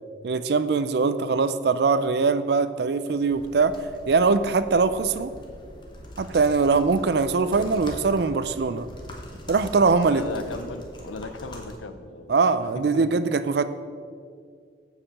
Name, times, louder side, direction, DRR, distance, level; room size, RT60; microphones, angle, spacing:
voice 1, 0.2-3.7 4.1-5.3 6.2-8.9 9.5-10.2 12.3-13.6, right 4 dB, 55° right, 13 dB, 0.4 m, -22 dB
sound 1, 3.3-11.7, left 1 dB, 25° left, 0.9 m, -42 dB
voice 2, 10.0-12.4 12.7-13.0, left 3 dB, 90° left, 10 dB, 0.6 m, -36 dB
8.7 x 4.9 x 6.6 m, 2.1 s
head